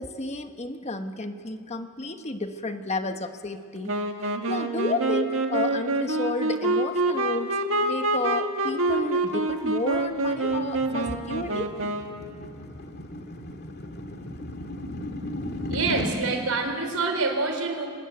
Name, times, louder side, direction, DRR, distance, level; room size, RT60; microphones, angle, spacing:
voice 1, 0.0-11.7, left 2 dB, 30° left, 7 dB, 1.3 m, -32 dB
Wind instrument woodwind instrument, 3.9-12.3, right 2 dB, 65° right, 1.9 m, -26 dB
sound 1, 9.6-16.1, left 1 dB, 50° left, 2.0 m, -36 dB
voice 2, 15.7-17.9, right 3 dB, 85° right, 5 dB, 4.0 m, -26 dB
25.0 x 20.5 x 9.2 m, 2.1 s
head